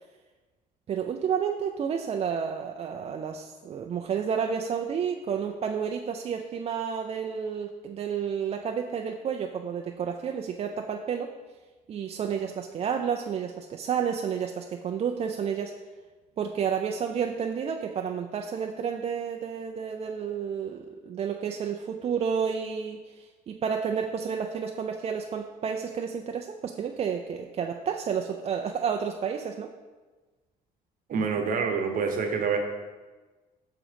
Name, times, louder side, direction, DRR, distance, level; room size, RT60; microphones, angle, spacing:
voice 1, 0.9-11.3 11.9-15.7 16.4-29.7, right 7 dB, 35° right, 3 dB, 0.4 m, -31 dB
voice 2, 31.1-32.6, right 5 dB, 55° right, 4 dB, 0.9 m, -27 dB
5.9 x 3.7 x 5.1 m, 1.3 s
cardioid pair, 110°, 17 cm